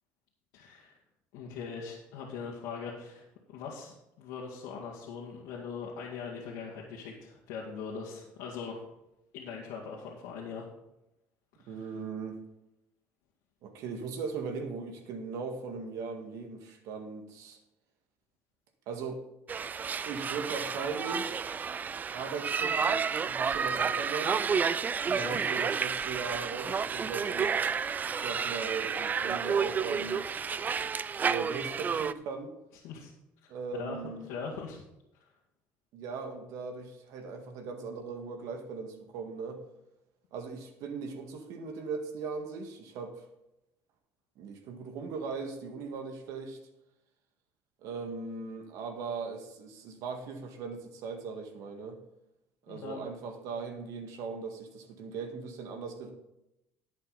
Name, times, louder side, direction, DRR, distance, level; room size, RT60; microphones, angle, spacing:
voice 1, 0.5-1.0 1.3-8.8 9.3-10.7 11.6-11.7 25.1-25.4 32.8-33.1 33.4-33.5 33.8-34.0 34.3-34.8 52.7-53.0, left 5 dB, 85° left, -3 dB, 2.0 m, -41 dB
voice 2, 11.7-12.4 13.6-17.6 18.9-19.2 20.1-21.5 22.1-24.4 25.1-27.8 28.1-30.5 31.2-32.5 33.5-34.3 35.9-39.6 40.3-43.3 44.4-46.6 47.8-52.0 52.7-56.1, right 5 dB, 75° right, 5 dB, 1.8 m, -39 dB
sound 1, 19.5-32.1, right 6 dB, 30° right, 0.4 m, -31 dB
11.0 x 8.4 x 4.1 m, 0.88 s
cardioid pair, 105°, 6 cm